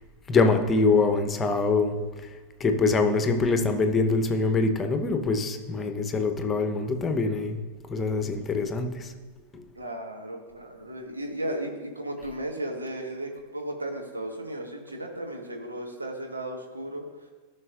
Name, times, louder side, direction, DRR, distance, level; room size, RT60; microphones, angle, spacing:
voice 1, 0.3-1.9 2.6-7.6 7.9-9.1 9.5-9.7, left 3 dB, 20° left, 7 dB, 0.9 m, -24 dB
voice 2, 9.7-17.0, right 1 dB, 80° right, 2 dB, 1.4 m, -35 dB
15.0 x 6.2 x 2.5 m, 1.4 s
figure-of-eight pair, 90°, 0 cm